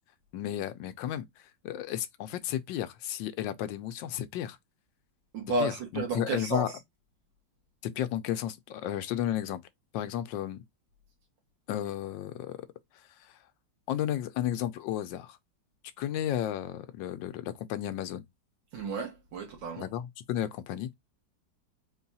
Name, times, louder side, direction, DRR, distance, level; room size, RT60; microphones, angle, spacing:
voice 1, 0.3-1.3 1.6-4.6 5.6-6.7 7.8-9.6 9.9-10.6 11.7-12.6 13.2-13.4 13.9-15.4 16.0-18.2 19.8-20.9, left 11 dB, 90° left, 1.3 m, -33 dB
voice 2, 5.3-6.7 18.7-19.9, right 2 dB, 85° right, 2.0 m, -32 dB
4.4 x 2.3 x 4.0 m
omnidirectional pair, 1.9 m